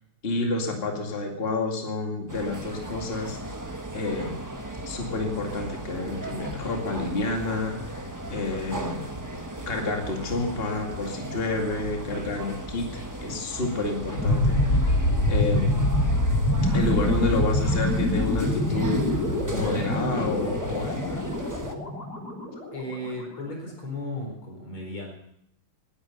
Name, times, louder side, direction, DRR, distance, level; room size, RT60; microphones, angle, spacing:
voice 1, 0.2-3.4 3.9-4.4 4.9-8.0 8.3-9.1 9.7-14.6 15.3-15.9 16.7-21.3, left 2 dB, 30° left, 2 dB, 2.4 m, -29 dB
sound 1, 2.3-21.7, right 1 dB, 15° right, 0.8 m, -37 dB
sound 2, 14.2-23.0, left 1 dB, 50° left, 3.6 m, -25 dB
voice 2, 22.7-25.1, left 1 dB, 80° left, 2 dB, 5.1 m, -35 dB
19.0 x 10.5 x 5.8 m, 0.76 s
omnidirectional pair, 2.3 m